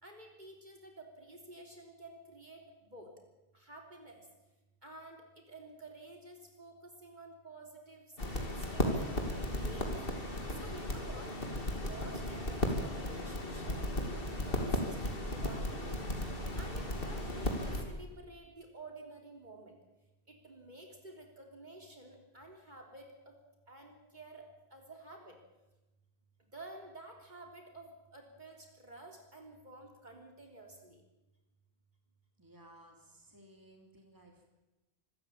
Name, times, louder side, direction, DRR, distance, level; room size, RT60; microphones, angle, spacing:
voice 1, 0.0-3.1 3.5-4.3 4.8-8.1 8.4-10.0 10.5-11.3 11.7-16.0 16.6-19.8 20.3-23.1 23.7-24.4 24.7-25.4 26.4-31.0, right 2 dB, 45° right, 2 dB, 3.6 m, -51 dB
sound 1, 8.2-17.8, left 1 dB, 60° left, 3.1 m, -35 dB
voice 2, 32.4-34.4, right 1 dB, 20° right, 2 dB, 3.1 m, -58 dB
24.5 x 14.0 x 8.9 m, 1.0 s
omnidirectional pair, 1.1 m